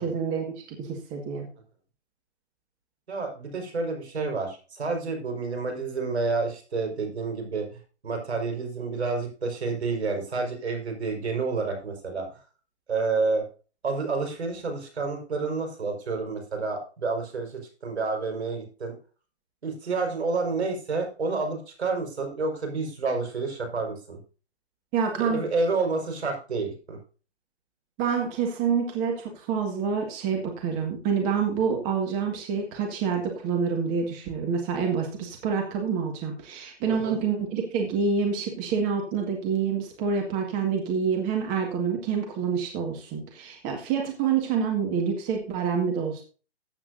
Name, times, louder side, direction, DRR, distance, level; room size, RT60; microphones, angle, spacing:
voice 1, 0.0-1.5 24.9-25.4 28.0-46.2, right 6 dB, 25° right, 2 dB, 1.9 m, -27 dB
voice 2, 3.1-12.3 12.9-13.4 13.8-18.9 19.6-24.2 25.2-27.0 36.9-37.2, right 4 dB, 75° right, 3 dB, 5.1 m, -29 dB
14.5 x 8.9 x 2.7 m, 0.36 s
hypercardioid pair, 140°, 33 cm